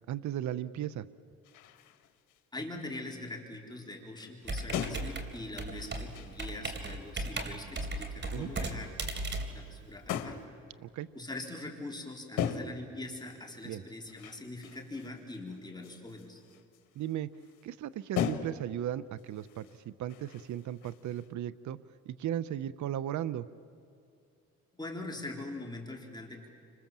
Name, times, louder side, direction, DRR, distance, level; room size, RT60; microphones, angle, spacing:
voice 1, 0.1-1.1 8.3-8.5 10.8-11.1 13.6-13.8 17.0-17.3 17.6-21.8 22.1-23.5, right 11 dB, 70° right, 15 dB, 0.8 m, -36 dB
sound 1, 1.4-2.4 2.7-3.3 3.9-4.0 4.2-7.0 7.4-8.0 8.4-8.6 10.1-10.5 12.4-12.9 13.3-17.7 18.1-18.8 19.2-21.3, left 8 dB, 90° left, 1.6 m, -40 dB
voice 2, 2.5-8.9 9.5-10.4 11.1-16.4 24.7-26.4, left 2 dB, 15° left, -1 dB, 4.2 m, -42 dB
Computer keyboard, 4.4-10.4, right 2 dB, 35° right, 3.3 m, -37 dB
30.0 x 26.0 x 7.5 m, 2.5 s
cardioid pair, 90°, 30 cm